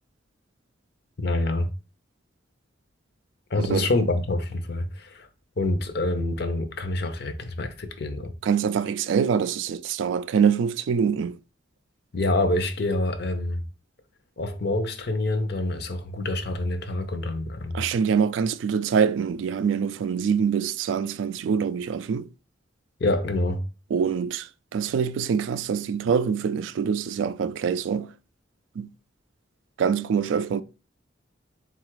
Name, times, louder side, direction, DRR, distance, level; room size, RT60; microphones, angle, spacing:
voice 1, 1.2-1.7 3.5-5.3 5.6-8.3 12.1-13.6 14.4-17.8 23.0-23.6, left 2 dB, 60° left, 0.6 m, -26 dB
voice 2, 3.6-3.9 8.4-11.4 17.7-22.3 23.9-28.1 28.8-28.9 29.8-30.6, right 7 dB, 80° right, 0.3 m, -24 dB
4.0 x 2.4 x 4.5 m
head